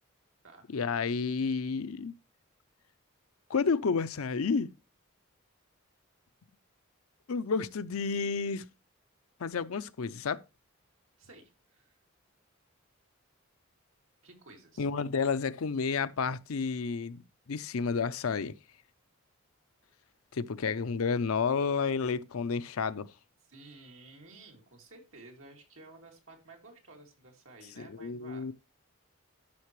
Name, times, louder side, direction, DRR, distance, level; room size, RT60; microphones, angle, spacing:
voice 1, 0.7-2.1 3.5-4.7 7.3-8.7 9.4-10.4 14.8-17.2 17.5-18.5 20.3-23.1 27.8-28.5, left 5 dB, 90° left, 0.6 m, -30 dB
voice 2, 11.2-12.0 14.2-14.9 23.5-28.5, right 2 dB, 75° right, 2.7 m, -53 dB
13.0 x 5.8 x 3.1 m
head